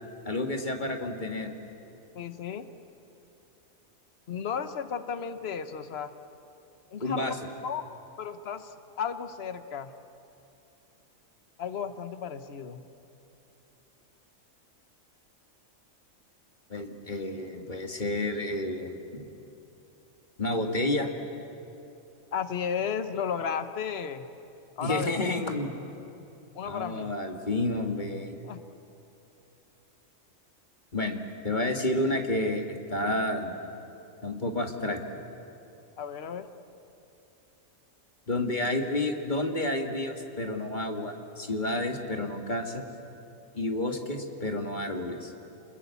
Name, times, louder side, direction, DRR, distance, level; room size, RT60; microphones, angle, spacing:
voice 1, 0.3-1.5 7.0-7.4 16.7-19.3 20.4-21.1 24.8-25.7 26.6-28.4 30.9-33.6 34.2-35.2 38.3-42.8 43.5-45.3, left 1 dB, 35° left, 4 dB, 1.9 m, -30 dB
voice 2, 2.1-2.6 4.3-6.1 6.9-7.4 7.6-7.8 8.2-9.9 11.6-12.8 22.3-24.3 24.8-25.1 26.5-27.1 28.4-28.6 36.0-36.5, left 7 dB, 50° left, 10 dB, 1.2 m, -33 dB
27.5 x 21.5 x 8.4 m, 2.8 s
omnidirectional pair, 1.4 m